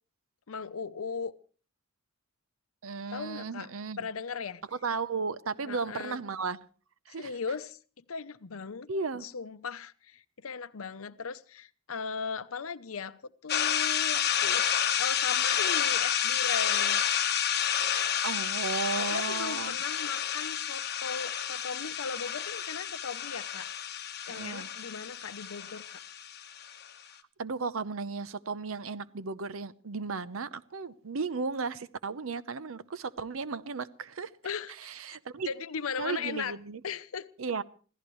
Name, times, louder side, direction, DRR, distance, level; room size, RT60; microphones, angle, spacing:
voice 1, 0.5-1.3 3.1-3.7 4.0-4.6 5.6-6.2 7.1-7.8 8.1-8.9 9.2-14.6 15.0-17.0 19.0-23.7 24.3-26.0 34.4-34.7 35.5-36.6 36.8-37.3, left 5 dB, 75° left, 0.7 m, -38 dB
voice 2, 2.8-4.1 4.8-6.6 7.1-7.3 8.9-9.3 18.2-19.8 24.3-24.7 27.4-34.3 34.8-35.5 36.0-36.8 37.4-37.6, right 4 dB, 70° right, 0.7 m, -35 dB
sound 1, 13.5-26.8, left 9 dB, 50° left, 1.2 m, -30 dB
26.0 x 16.0 x 3.1 m
head